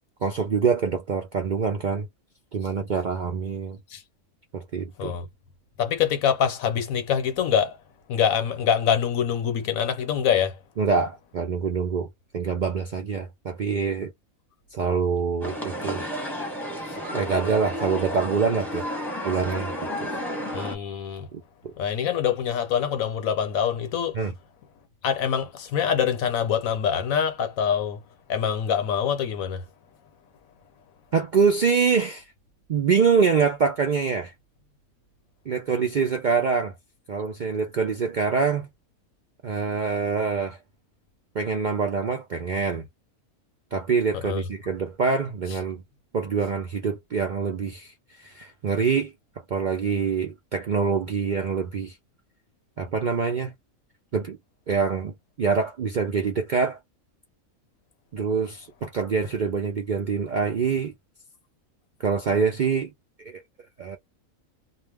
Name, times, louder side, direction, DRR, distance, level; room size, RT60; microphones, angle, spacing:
voice 1, 0.2-2.1 2.5-3.8 4.5-5.2 10.8-12.1 12.3-14.1 14.7-16.0 17.1-18.8 19.2-19.7 20.0-20.2 21.3-21.4 24.1-24.3 31.1-32.3 32.7-34.3 35.5-36.7 37.1-38.7 39.4-40.6 41.3-42.9 43.7-45.8 46.1-49.1 49.5-52.0 52.8-53.5 54.1-54.4 54.7-56.8 58.1-60.9 62.0-62.9 63.2-63.4 63.8-64.0, right 5 dB, 75° right, 0.4 m, -25 dB
voice 2, 5.8-7.8 8.1-10.6 16.9-17.0 20.5-21.3 21.8-24.2 25.0-28.0 28.3-29.6 44.1-44.4, left 8 dB, 75° left, 1.1 m, -25 dB
sound 1, 15.4-20.8, equal, ahead, 0.8 m, -31 dB
2.3 x 2.1 x 3.3 m
omnidirectional pair, 1.5 m